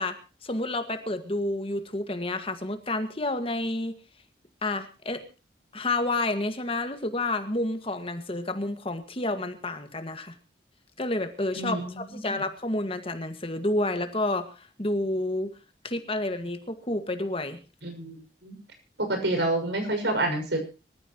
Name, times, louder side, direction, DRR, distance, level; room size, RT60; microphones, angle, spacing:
voice 1, 0.0-4.0 4.6-5.2 5.7-10.3 11.0-15.5 15.8-17.6, left 2 dB, 30° left, 8 dB, 1.9 m, -30 dB
voice 2, 11.5-12.4 17.8-18.5 19.0-20.6, right 2 dB, 85° right, 5 dB, 6.3 m, -28 dB
25.5 x 14.0 x 3.1 m, 0.32 s
head